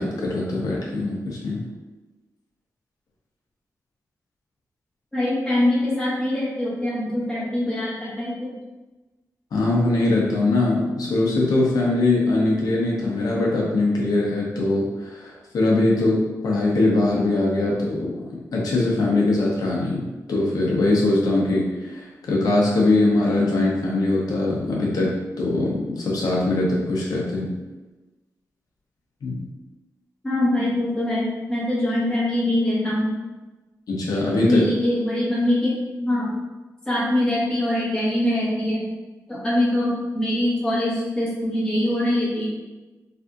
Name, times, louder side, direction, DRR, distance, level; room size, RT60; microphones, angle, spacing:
voice 1, 0.0-1.6 9.5-20.0 20.3-27.5 29.2-29.5 33.9-34.7, left 2 dB, 80° left, -4 dB, 0.8 m, -22 dB
voice 2, 5.1-8.5 30.2-33.2 34.5-36.3 36.9-38.9 39.3-42.5, left 1 dB, 10° left, -8 dB, 0.9 m, -23 dB
3.4 x 2.6 x 2.4 m, 1.1 s
wide cardioid pair, 120°, 6 cm